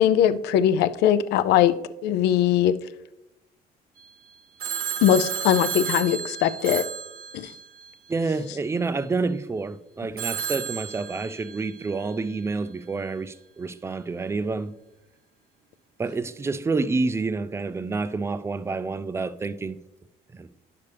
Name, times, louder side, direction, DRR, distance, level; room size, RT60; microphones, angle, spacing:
voice 1, 0.0-1.7 2.0-2.7 5.0-6.8 7.3-7.5, left 10 dB, 80° left, 0.5 m, -20 dB
Telephone, 4.6-7.9 10.2-11.7, right 8 dB, 60° right, 0.9 m, -32 dB
voice 2, 8.1-14.8 16.0-19.8 20.3-20.5, right 3 dB, 15° right, 0.4 m, -28 dB
9.6 x 6.7 x 3.3 m
cardioid pair, 110°, 17 cm